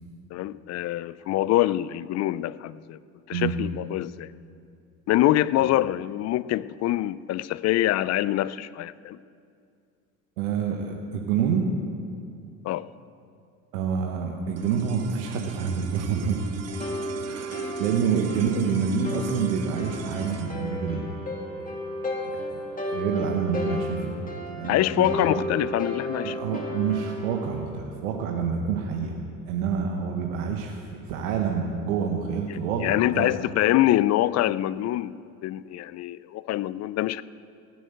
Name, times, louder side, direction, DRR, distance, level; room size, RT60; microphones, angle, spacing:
voice 1, 0.3-3.0 3.3-4.3 5.1-9.2 12.6-12.9 24.7-26.4 32.5-35.1 35.4-37.2, left 14 dB, 40° left, 18 dB, 0.5 m, -25 dB
voice 2, 10.4-11.7 13.7-16.4 17.2-21.1 21.6-21.7 22.3-22.6 22.9-24.2 24.5-25.5 26.2-29.2 29.5-33.3, right 6 dB, 80° right, 2 dB, 1.4 m, -27 dB
sound 1, 14.5-25.0, right 6 dB, 35° right, 1.2 m, -42 dB
sound 2, 16.7-27.6, equal, 20° left, 2.8 m, -33 dB
17.0 x 7.9 x 8.0 m, 2.4 s
hypercardioid pair, 80°, 42 cm